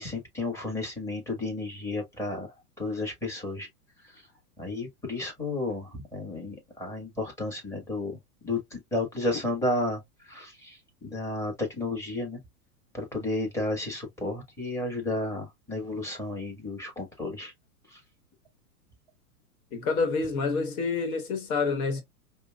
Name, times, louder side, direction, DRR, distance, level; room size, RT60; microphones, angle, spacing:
voice 1, 0.0-3.7 4.6-8.2 8.4-10.0 10.3-12.4 12.9-17.5 17.9-18.0, left 2 dB, 5° left, 1.5 m, -32 dB
voice 2, 19.7-22.0, left 4 dB, 65° left, 1.2 m, -28 dB
5.1 x 2.2 x 2.3 m
hypercardioid pair, 125°, 47 cm